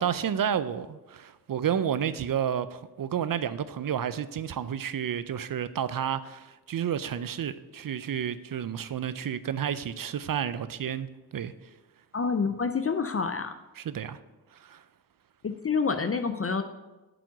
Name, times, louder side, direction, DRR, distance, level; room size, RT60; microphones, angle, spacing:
voice 1, 0.0-11.5 13.7-14.2 14.5-14.8, right 8 dB, 60° right, 14 dB, 0.5 m, -31 dB
voice 2, 12.1-13.5 15.4-16.6, left 5 dB, 35° left, 9 dB, 0.5 m, -27 dB
7.5 x 5.0 x 5.8 m, 1.1 s
cardioid pair, 60°, 38 cm